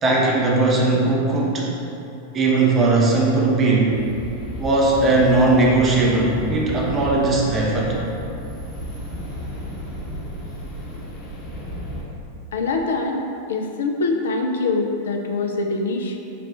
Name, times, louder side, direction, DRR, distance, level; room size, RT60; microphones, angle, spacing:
voice 1, 0.0-1.7 2.3-4.0 4.6-8.0, right 2 dB, 25° right, -3 dB, 0.6 m, -18 dB
sound 1, 3.9-12.0, equal, 40° left, 1.0 m, -33 dB
voice 2, 12.5-13.2 13.5-16.2, left 3 dB, 65° left, 3 dB, 0.4 m, -24 dB
5.7 x 2.4 x 3.5 m, 2.8 s
figure-of-eight pair, 90°, 0 cm